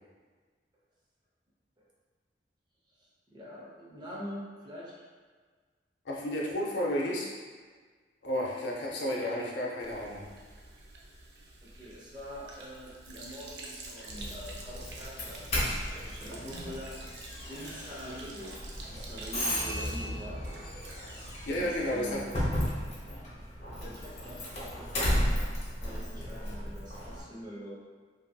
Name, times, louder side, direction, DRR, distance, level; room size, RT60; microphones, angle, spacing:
voice 1, 3.0-4.9 9.1-9.4 11.6-15.5 16.1-18.6 18.9-20.4 21.5-22.3 23.8-25.4 25.7-27.7, equal, 25° right, -6 dB, 0.6 m, -45 dB
voice 2, 6.1-7.3 8.2-10.3 16.3-16.5 21.4-22.2, left 1 dB, 80° left, -3 dB, 0.5 m, -32 dB
Sink (filling or washing), 9.8-22.1, right 2 dB, 75° right, 0.5 m, -48 dB
Doorbell, 14.1-27.2, equal, 40° left, 0.7 m, -35 dB
2.6 x 2.6 x 2.2 m, 1.5 s
head